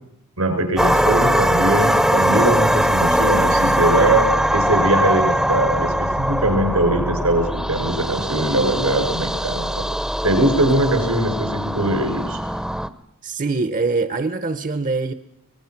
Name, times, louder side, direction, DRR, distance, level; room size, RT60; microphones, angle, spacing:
voice 1, 0.4-4.3 4.5-9.9 10.2-12.4, right 1 dB, 90° right, 5.9 m, -21 dB
sound 1, 0.8-12.9, equal, ahead, 0.7 m, -21 dB
voice 2, 13.2-15.1, right 3 dB, 40° right, 0.8 m, -23 dB
25.5 x 20.0 x 5.9 m
head